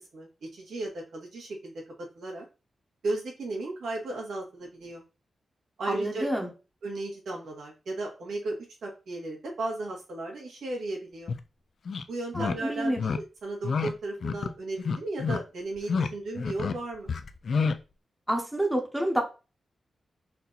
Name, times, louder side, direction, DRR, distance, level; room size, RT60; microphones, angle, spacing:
voice 1, 0.1-1.7 2.0-2.5 3.0-5.0 5.8-6.3 6.8-11.3 12.1-17.1, right 2 dB, 90° right, -1 dB, 1.8 m, -35 dB
voice 2, 5.9-6.5 12.3-13.0 18.3-19.2, right 1 dB, 5° right, 2 dB, 0.9 m, -28 dB
sound 1, 11.3-11.4 11.9-12.0 12.3-12.6 13.0-13.2 13.6-13.9 14.2-14.5 14.8-15.4 15.8-16.1 16.4-16.8 17.1-17.8, left 5 dB, 55° left, 0.4 m, -28 dB
4.3 x 2.7 x 4.0 m, 0.31 s
wide cardioid pair, 135°, 0 cm